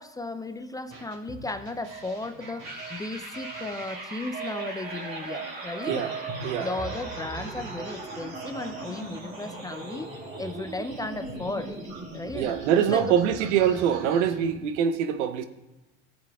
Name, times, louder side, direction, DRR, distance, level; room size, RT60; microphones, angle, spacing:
voice 1, 0.0-6.0 6.6-10.1 10.4-11.8 12.1-12.6 12.9-13.5, left 2 dB, 10° left, 9 dB, 0.4 m, -35 dB
sound 1, 0.9-14.3, right 4 dB, 45° right, 3.0 m, -41 dB
sound 2, 2.6-14.7, right 1 dB, 25° right, 2.3 m, -40 dB
voice 2, 12.3-15.5, right 8 dB, 85° right, 11 dB, 0.7 m, -24 dB
16.0 x 7.0 x 2.3 m, 1.0 s
supercardioid pair, 95°, 35 cm